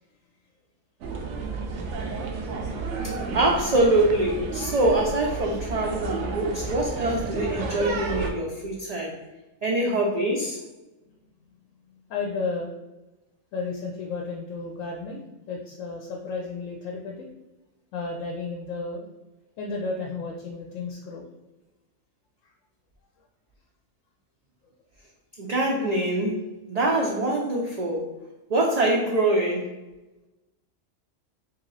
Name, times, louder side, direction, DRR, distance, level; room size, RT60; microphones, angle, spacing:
sound 1, 1.0-8.3, right 4 dB, 70° right, 0.9 m, -32 dB
voice 1, 2.9-9.2 9.6-10.6 25.4-26.4 26.7-28.1 28.5-29.7, right 1 dB, 50° right, -2 dB, 0.5 m, -24 dB
voice 2, 11.9-12.7 13.5-17.3 17.9-19.1 19.6-21.3 22.4-22.5, left 4 dB, 80° left, -1 dB, 1.0 m, -33 dB
3.0 x 2.9 x 3.8 m, 1.0 s
omnidirectional pair, 1.3 m